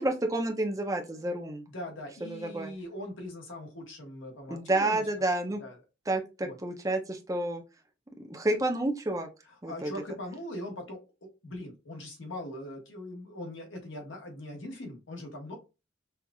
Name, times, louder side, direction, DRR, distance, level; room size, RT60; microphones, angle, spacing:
voice 1, 0.0-1.6 2.2-2.7 4.5-5.6 6.1-7.6 8.2-9.3 9.6-9.9, right 2 dB, 15° right, 4 dB, 0.5 m, -30 dB
voice 2, 1.7-5.0 5.6-5.8 6.4-6.6 9.6-15.6, left 1 dB, 75° left, 2 dB, 1.2 m, -41 dB
5.5 x 2.4 x 2.3 m, 0.29 s
head